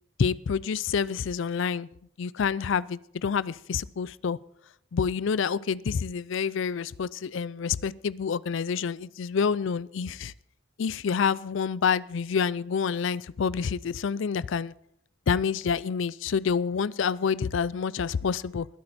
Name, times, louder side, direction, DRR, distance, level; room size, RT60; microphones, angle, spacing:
voice 1, 0.2-1.9 2.2-4.4 4.9-10.3 10.8-14.7 15.3-18.7, left 6 dB, 60° left, 0.4 m, -28 dB
20.5 x 8.7 x 4.2 m
head